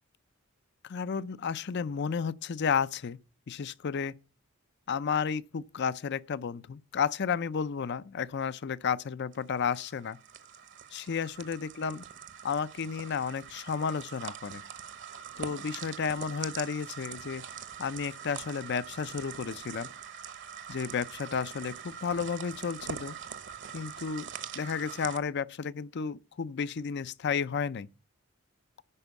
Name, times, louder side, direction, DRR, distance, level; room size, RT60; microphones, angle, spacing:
voice 1, 0.8-3.2 3.5-4.1 4.9-10.2 10.9-12.0 12.4-14.6 15.4-17.4 17.8-19.9 20.7-23.2 23.7-24.3 24.5-27.9, left 6 dB, 55° left, 0.5 m, -32 dB
sound 1, 9.3-25.2, right 7 dB, 65° right, 1.1 m, -43 dB
11.0 x 4.5 x 8.0 m
head